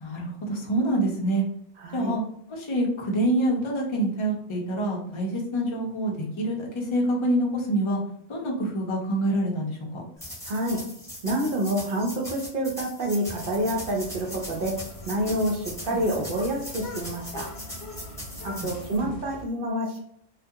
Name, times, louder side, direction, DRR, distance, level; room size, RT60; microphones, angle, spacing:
voice 1, 0.0-1.4 1.9-2.2 2.5-8.0 8.3-10.0 15.9-16.0 18.6-19.1, right 1 dB, 45° left, -1 dB, 0.3 m, -26 dB
voice 2, 1.8-2.1 10.5-10.8 11.2-17.5 18.4-20.0, right 1 dB, 60° right, 0 dB, 0.7 m, -28 dB
sound 1, 10.2-19.0, left 1 dB, 5° left, 0.6 m, -40 dB
sound 2, 13.2-19.5, left 2 dB, 70° left, 0.8 m, -42 dB
2.3 x 2.2 x 2.7 m, 0.70 s
omnidirectional pair, 1.2 m